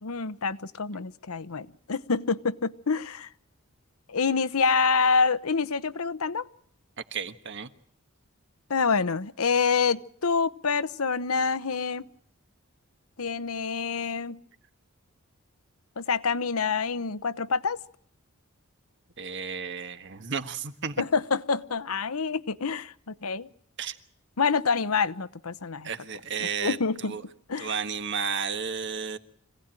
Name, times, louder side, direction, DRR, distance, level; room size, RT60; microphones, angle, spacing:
voice 1, 0.0-3.3 4.1-6.5 8.7-12.1 13.2-14.4 16.0-17.8 21.0-23.5 24.4-25.9 26.4-27.2 27.5-27.7, left 5 dB, 80° left, 14 dB, 0.9 m, -27 dB
voice 2, 7.1-7.7 19.2-21.0 23.8-24.0 25.8-27.2 27.6-29.2, right 6 dB, 55° right, 10 dB, 1.5 m, -33 dB
25.5 x 17.5 x 9.0 m, 0.64 s
head